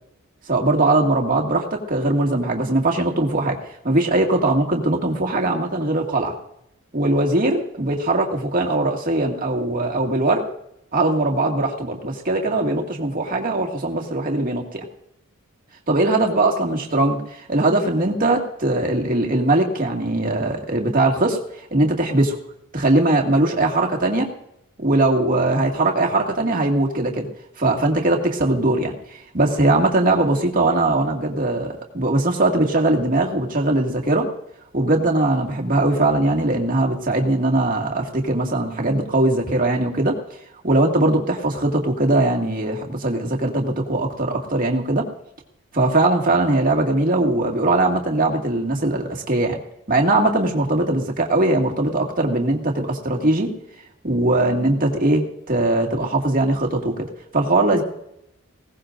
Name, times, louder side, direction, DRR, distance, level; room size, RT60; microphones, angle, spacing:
voice 1, 0.5-3.6 3.8-6.3 6.9-10.4 10.9-14.8 15.9-21.4 21.7-22.4 22.7-24.3 24.8-27.3 27.6-28.9 29.3-34.3 34.7-40.2 40.6-45.1 45.7-49.6 49.9-53.5 54.0-57.1 57.3-57.8, right 2 dB, 40° right, 1 dB, 2.1 m, -20 dB
20.5 x 17.5 x 2.6 m, 0.79 s
head